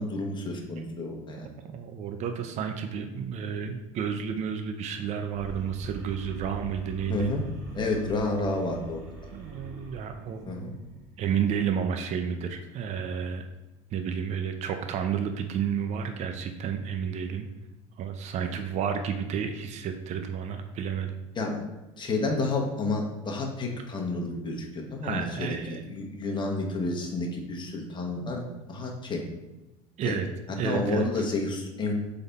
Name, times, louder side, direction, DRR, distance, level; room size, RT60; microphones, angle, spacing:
voice 1, 0.0-1.5 7.1-7.4 7.7-9.0 10.5-10.7 21.4-21.6 22.0-25.6 25.9-28.4 28.7-29.2 30.0-30.1 30.6-32.0, left 2 dB, 30° left, 1 dB, 1.0 m, -30 dB
voice 2, 1.7-7.3 9.3-10.5 11.2-13.4 13.9-17.5 18.0-21.2 25.0-25.8 28.2-28.5 30.0-30.3 30.6-31.2, right 7 dB, 45° right, 6 dB, 0.5 m, -31 dB
sound 1, 5.3-11.6, right 3 dB, 65° right, 1.2 m, -43 dB
3.9 x 3.4 x 4.0 m, 1.1 s
hypercardioid pair, 85°, 17 cm